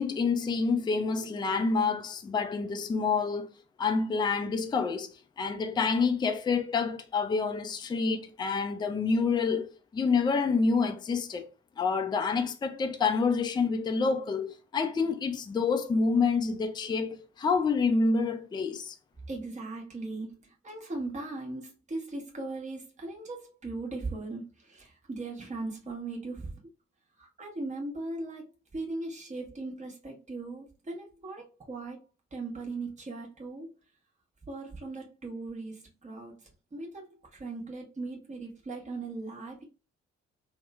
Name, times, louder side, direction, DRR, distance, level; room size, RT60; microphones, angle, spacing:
voice 1, 0.0-3.5 3.8-11.5 11.8-19.0, left 4 dB, 15° left, 0.4 m, -28 dB
voice 2, 19.3-26.5 27.2-32.1 32.3-33.7 34.5-39.6, right 3 dB, 20° right, 1.1 m, -39 dB
2.9 x 2.0 x 2.3 m
hypercardioid pair, 40°, 33 cm